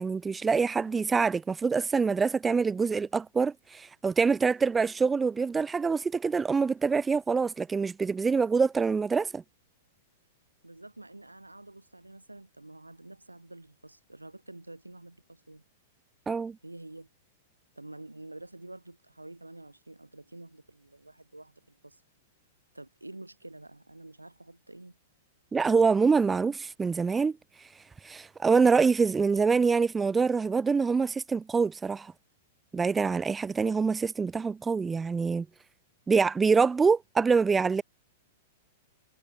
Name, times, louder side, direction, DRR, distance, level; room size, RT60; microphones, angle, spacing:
voice 1, 0.0-9.4 16.3-16.6 25.5-27.4 28.0-32.1 32.7-35.5 36.1-37.8, right 5 dB, 15° right, 0.6 m, -25 dB
voice 2, 10.6-15.6 16.6-17.1 17.8-22.0 22.7-25.0 26.3-26.5, right 2 dB, 90° right, 3.4 m, -48 dB
figure-of-eight pair, 100°, 0 cm